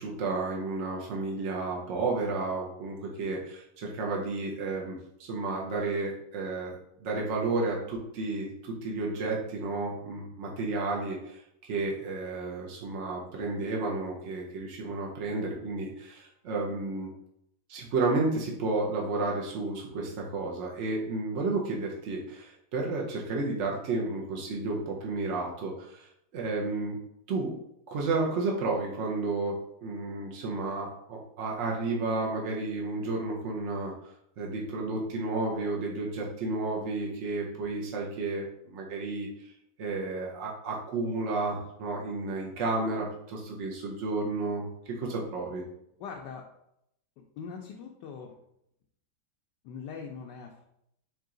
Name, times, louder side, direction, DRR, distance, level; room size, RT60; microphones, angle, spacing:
voice 1, 0.0-17.1 17.7-26.1 26.3-27.0 27.3-27.6 27.9-39.3 39.8-44.6 45.0-45.6, right 3 dB, 65° right, -1 dB, 0.7 m, -32 dB
voice 2, 46.0-46.5 47.4-48.3 49.6-50.7, left 6 dB, 75° left, 0 dB, 1.1 m, -42 dB
4.7 x 2.9 x 3.7 m, 0.77 s
omnidirectional pair, 2.2 m